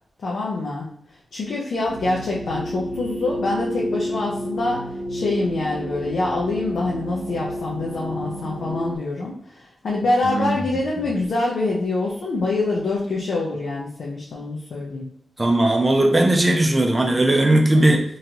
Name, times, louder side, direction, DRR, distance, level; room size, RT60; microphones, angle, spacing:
voice 1, 0.2-0.9 1.3-15.1, left 2 dB, 65° left, -4 dB, 0.8 m, -25 dB
sound 1, 1.9-9.0, equal, 85° right, 0.6 m, -30 dB
voice 2, 10.2-10.6 15.4-18.0, right 1 dB, 15° right, 2 dB, 0.6 m, -18 dB
3.8 x 3.2 x 2.9 m, 0.68 s
wide cardioid pair, 160°, 0 cm